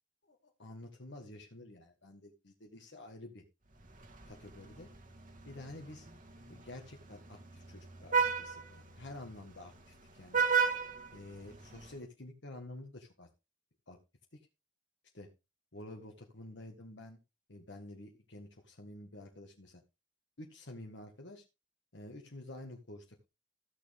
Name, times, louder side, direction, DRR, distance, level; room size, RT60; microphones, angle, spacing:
voice 1, 0.3-3.4 4.3-4.9 5.4-6.1 6.5-10.4 11.1-13.3 13.9-14.0 15.1-15.3 15.7-17.2 17.5-19.8 20.4-21.4 21.9-23.2, left 1 dB, 75° left, 2 dB, 1.7 m, -49 dB
Vehicle horn car horn honking, 3.8-11.9, right 5 dB, 45° right, 1.6 m, -36 dB
15.0 x 6.6 x 3.5 m, 0.26 s
head